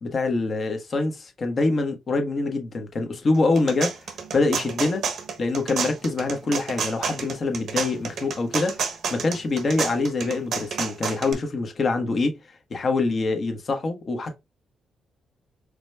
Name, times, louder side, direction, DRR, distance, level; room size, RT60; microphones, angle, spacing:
voice 1, 0.0-4.1 4.3-5.0 5.4-12.4 12.7-14.4, left 3 dB, 45° left, 1.1 m, -25 dB
sound 1, 3.3-11.3, right 6 dB, 65° right, 0.9 m, -30 dB
4.9 x 3.3 x 2.2 m
cardioid pair, 90°, 0 cm